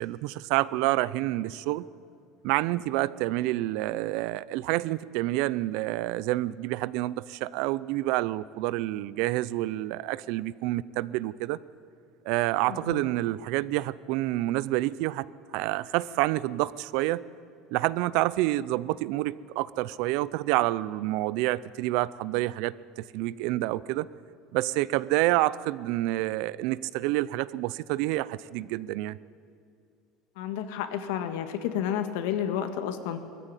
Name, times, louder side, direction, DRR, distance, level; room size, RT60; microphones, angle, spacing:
voice 1, 0.0-1.9 2.4-11.6 12.3-15.3 15.5-17.2 17.7-24.1 24.5-29.2, right 17 dB, 65° right, 20 dB, 0.5 m, -28 dB
voice 2, 12.7-13.0 30.4-33.2, left 9 dB, 85° left, 8 dB, 1.7 m, -31 dB
20.5 x 14.5 x 9.8 m, 2.5 s
cardioid pair, 170°, 0 cm